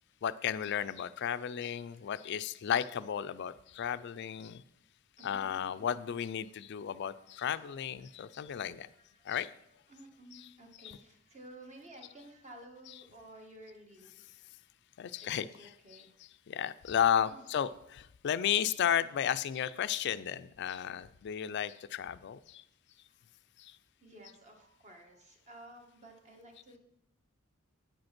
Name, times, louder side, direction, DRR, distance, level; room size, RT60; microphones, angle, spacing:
voice 1, 0.2-4.6 5.2-8.9 9.2-9.5 10.3-10.5 10.8-11.0 12.9-13.0 15.0-22.6 23.6-23.8, left 9 dB, 55° left, 14 dB, 0.3 m, -34 dB
voice 2, 5.2-5.9 7.1-7.4 8.0-8.3 8.9-9.2 9.9-14.3 15.2-16.1 17.3-17.4 24.0-26.8, right 1 dB, 35° right, 2 dB, 1.5 m, -54 dB
9.0 x 5.2 x 5.9 m, 0.78 s
head